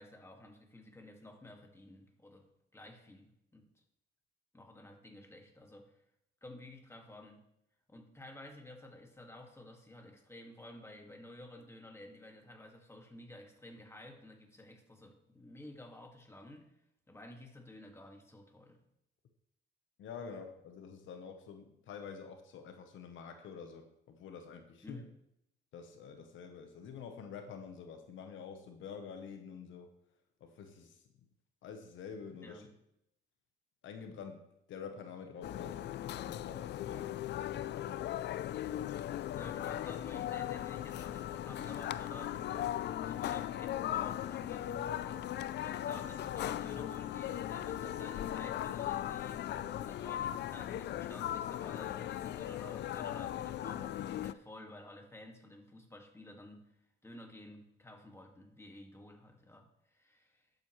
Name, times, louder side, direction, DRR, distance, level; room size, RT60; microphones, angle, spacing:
voice 1, 0.0-3.7 4.5-5.9 6.4-7.5 7.9-16.7 17.1-18.8 24.8-25.0 32.4-32.7 36.9-37.1 39.3-56.7 57.0-60.5, left 1 dB, 15° left, 2 dB, 1.9 m, -52 dB
voice 2, 20.0-25.1 25.7-29.9 30.4-31.0 31.6-32.7 33.8-37.0 37.4-38.1, left 6 dB, 75° left, 6 dB, 1.0 m, -48 dB
sound 1, 35.4-54.3, left 12 dB, 60° left, 0.4 m, -38 dB
11.5 x 7.8 x 3.2 m, 0.79 s
cardioid pair, 90°, 20 cm